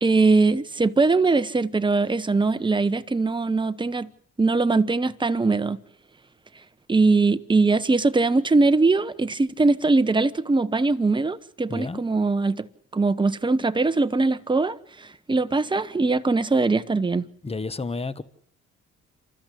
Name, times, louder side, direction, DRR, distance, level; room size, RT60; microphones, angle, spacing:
voice 1, 0.0-4.1 4.4-5.8 6.9-12.7 12.9-17.2, right 3 dB, 15° right, 1.1 m, -21 dB
voice 2, 11.7-12.0 17.4-18.2, left 3 dB, 20° left, 1.3 m, -31 dB
28.0 x 13.5 x 8.4 m
cardioid pair, 90°, 30 cm